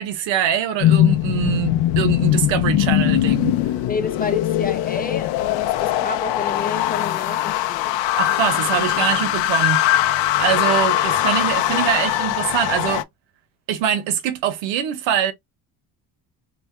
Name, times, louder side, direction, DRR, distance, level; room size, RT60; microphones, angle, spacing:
voice 1, 0.0-3.6 8.2-9.8 10.4-13.0 13.7-15.3, right 10 dB, 80° right, 1.0 m, -23 dB
sound 1, 0.8-13.0, left 14 dB, 70° left, 0.6 m, -20 dB
voice 2, 3.9-8.0, left 5 dB, 20° left, 0.9 m, -29 dB
4.1 x 2.2 x 3.2 m
cardioid pair, 115°, 45 cm